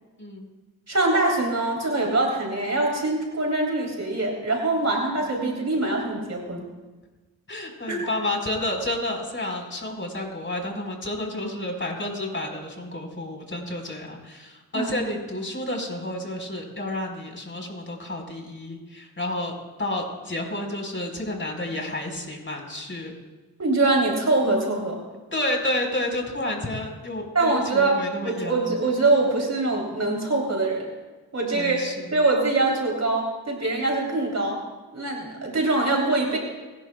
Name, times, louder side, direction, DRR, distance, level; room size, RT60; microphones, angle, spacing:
voice 1, 0.2-0.5 4.9-5.2 7.5-23.1 25.3-28.7 31.5-32.1, left 1 dB, 30° left, 2 dB, 4.4 m, -30 dB
voice 2, 0.9-6.7 7.9-8.0 14.7-14.9 23.6-25.0 27.3-30.9 31.3-31.8 32.1-34.6 34.9-36.4, right 2 dB, 40° right, -1 dB, 3.2 m, -23 dB
26.0 x 11.5 x 2.3 m, 1.2 s
supercardioid pair, 45°, 39 cm